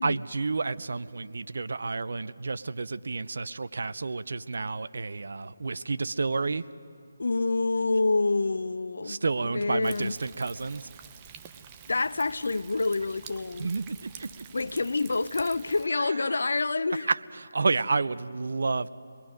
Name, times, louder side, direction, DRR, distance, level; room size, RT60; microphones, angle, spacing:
voice 1, 0.0-6.7 9.0-10.9 13.6-14.5 15.9-16.5 16.9-18.9, right 3 dB, 65° right, 0.6 m, -30 dB
voice 2, 7.2-9.2 9.5-10.1 11.9-13.7 14.5-17.1, left 3 dB, 70° left, 0.5 m, -27 dB
Thunder, 9.8-15.9, right 8 dB, 20° right, 0.8 m, -48 dB
29.0 x 21.0 x 5.1 m
figure-of-eight pair, 155°, 0 cm